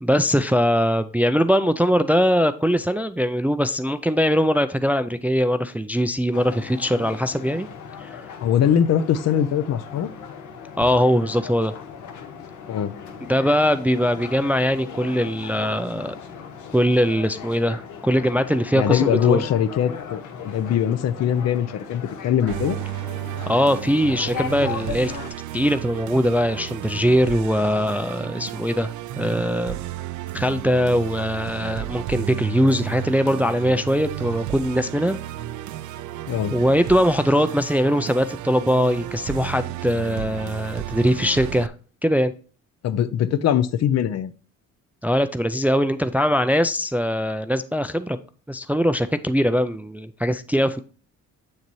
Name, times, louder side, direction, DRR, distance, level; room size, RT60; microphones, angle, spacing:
voice 1, 0.0-7.7 8.0-8.2 10.8-11.7 13.3-16.2 16.7-19.4 23.5-25.1 25.5-29.8 30.3-35.2 36.5-41.7 42.0-42.3 45.0-48.2 48.5-50.8, equal, 5° right, 0.3 m, -21 dB
sound 1, 6.3-25.3, left 7 dB, 75° left, 1.0 m, -37 dB
voice 2, 8.4-10.1 12.7-12.9 18.8-22.8 36.3-36.5 42.8-44.3, left 9 dB, 60° left, 0.5 m, -22 dB
Musical instrument, 22.5-41.7, right 13 dB, 75° right, 0.5 m, -33 dB
7.2 x 6.7 x 3.1 m
cardioid pair, 90°, 30 cm